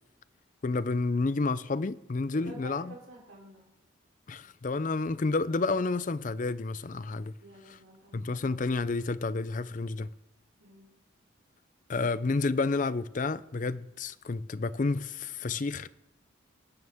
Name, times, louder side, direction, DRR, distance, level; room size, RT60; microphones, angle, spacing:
voice 1, 0.6-2.9 4.3-7.3 7.7-7.8 8.1-10.1 11.9-15.9, left 3 dB, 40° left, 0.5 m, -30 dB
voice 2, 2.3-3.6 7.4-8.3 10.6-10.9, right 2 dB, 85° right, 3.8 m, -49 dB
24.0 x 9.3 x 3.6 m
head